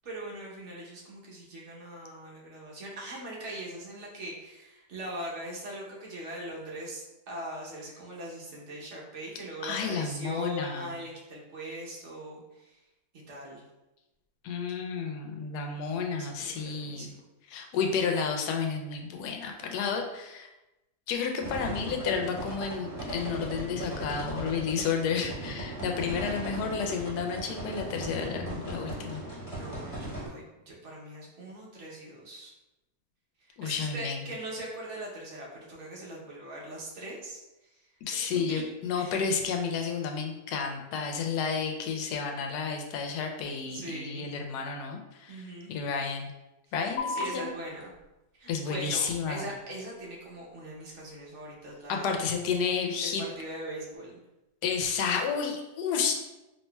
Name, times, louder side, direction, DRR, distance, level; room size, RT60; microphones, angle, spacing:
voice 1, 0.0-12.8 13.3-13.6 15.7-17.2 25.8-26.6 29.4-32.5 33.5-37.4 37.7-38.6 38.9-39.4 43.7-44.3 45.3-45.7 47.1-47.9 48.3-52.4 53.0-54.2, right 1 dB, 55° right, -3 dB, 1.0 m, -41 dB
voice 2, 9.6-10.9 14.4-17.1 17.5-20.5 21.1-29.2 33.6-34.2 38.1-46.3 46.7-47.5 48.5-49.4 51.9-53.2 54.6-56.2, left 5 dB, 85° left, 3 dB, 1.1 m, -31 dB
sound 1, 21.4-30.3, right 1 dB, 20° left, 1.2 m, -38 dB
sound 2, 47.0-54.0, left 4 dB, 65° left, 0.7 m, -43 dB
4.2 x 2.8 x 2.2 m, 0.97 s
omnidirectional pair, 1.7 m